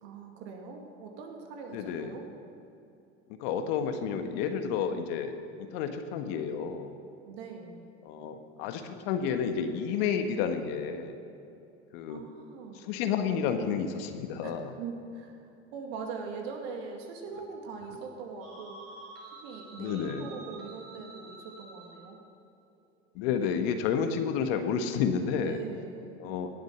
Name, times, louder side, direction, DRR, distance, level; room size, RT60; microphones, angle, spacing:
voice 1, 0.0-2.3 7.3-7.9 12.1-12.8 14.4-15.3 15.7-18.8 19.4-22.2 25.4-26.2, right 5 dB, 70° right, 2 dB, 2.2 m, -42 dB
voice 2, 1.7-2.1 3.4-5.3 5.7-6.9 8.0-11.1 11.9-12.2 12.8-14.7 19.8-20.3 23.1-25.6 26.2-26.5, left 7 dB, 65° left, 7 dB, 1.4 m, -30 dB
sound 1, 18.4-22.1, right 3 dB, 45° right, 3.9 m, -48 dB
17.5 x 8.0 x 6.0 m, 2.7 s
hypercardioid pair, 90°, 33 cm